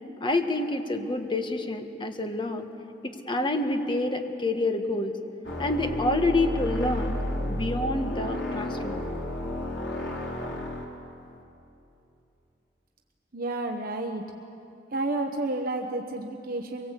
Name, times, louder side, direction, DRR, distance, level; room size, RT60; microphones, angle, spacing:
voice 1, 0.2-2.7 3.0-5.1 5.6-7.2 7.5-9.0, left 2 dB, 25° left, 5 dB, 1.5 m, -28 dB
sound 1, 5.4-10.8, left 1 dB, 75° left, 3.4 m, -31 dB
voice 2, 13.3-14.2 14.9-16.9, right 2 dB, 50° right, 3 dB, 1.1 m, -30 dB
24.0 x 22.5 x 8.3 m, 2.9 s
head